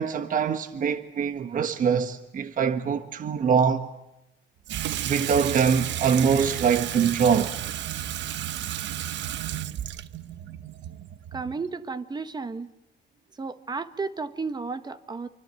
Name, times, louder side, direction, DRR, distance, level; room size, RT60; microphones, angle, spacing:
voice 1, 0.0-3.9 5.0-7.5, right 7 dB, 40° right, 1.3 m, -23 dB
Water tap faucet / Sink (filling or washing), 4.7-11.7, right 12 dB, 60° right, 1.0 m, -32 dB
voice 2, 11.3-12.7 13.4-15.3, right 4 dB, 20° right, 1.4 m, -33 dB
29.5 x 24.0 x 7.7 m
cardioid pair, 130°, 21 cm